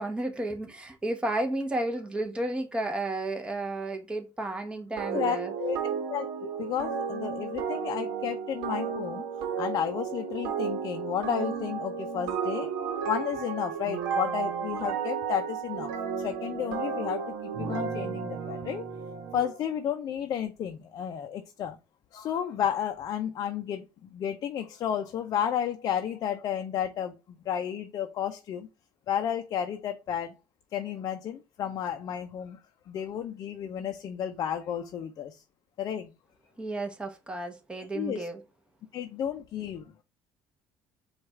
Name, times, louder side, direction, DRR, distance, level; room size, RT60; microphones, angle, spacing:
voice 1, 0.0-5.5 36.6-38.4, right 2 dB, 15° right, 0.9 m, -32 dB
sound 1, 5.0-19.6, right 6 dB, 85° right, 0.9 m, -33 dB
voice 2, 5.1-9.2 9.6-12.7 13.1-18.8 19.3-21.8 22.1-28.7 29.1-30.3 30.7-32.6 32.9-35.4 35.8-36.1 37.9-38.3 38.9-40.0, left 9 dB, 55° left, 0.5 m, -32 dB
4.7 x 2.4 x 4.4 m
cardioid pair, 115°, 8 cm